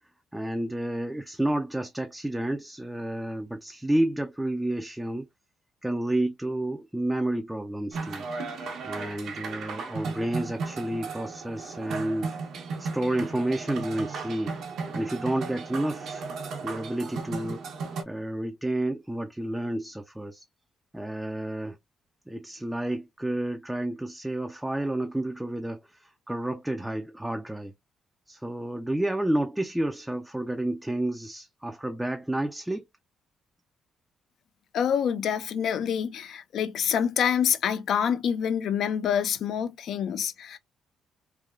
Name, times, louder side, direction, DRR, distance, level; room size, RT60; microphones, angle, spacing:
voice 1, 0.3-5.3 5.8-8.3 8.8-12.4 12.8-14.5 14.9-16.2 16.6-17.6 18.1-20.4 20.9-21.8 22.3-27.7 28.3-32.9, right 1 dB, 5° right, 0.4 m, -30 dB
sound 1, 7.9-18.0, right 4 dB, 70° right, 0.9 m, -35 dB
voice 2, 34.7-40.6, left 8 dB, 70° left, 0.5 m, -26 dB
3.3 x 2.2 x 2.4 m
cardioid pair, 90°, 0 cm